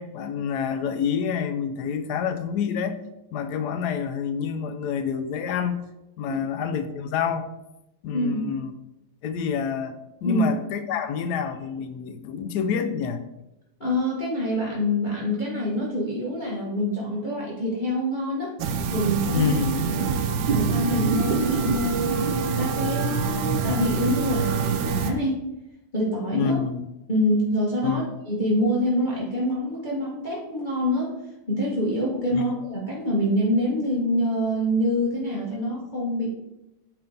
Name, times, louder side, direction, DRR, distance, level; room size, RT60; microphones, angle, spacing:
voice 1, 0.0-3.0 3.3-5.8 6.2-7.5 8.0-8.7 9.2-13.2 19.3-19.8 26.3-26.9 27.8-28.1 32.3-32.5, left 7 dB, 70° left, 9 dB, 1.1 m, -27 dB
voice 2, 8.1-8.4 10.2-10.5 13.8-18.5 18.9-19.5 19.9-20.1 20.5-25.4 25.9-26.6 27.1-31.1 31.5-36.3, equal, 25° left, -6 dB, 1.4 m, -26 dB
sound 1, 18.6-25.1, right 5 dB, 75° right, 1.3 m, -25 dB
8.9 x 3.7 x 3.9 m, 0.91 s
omnidirectional pair, 2.0 m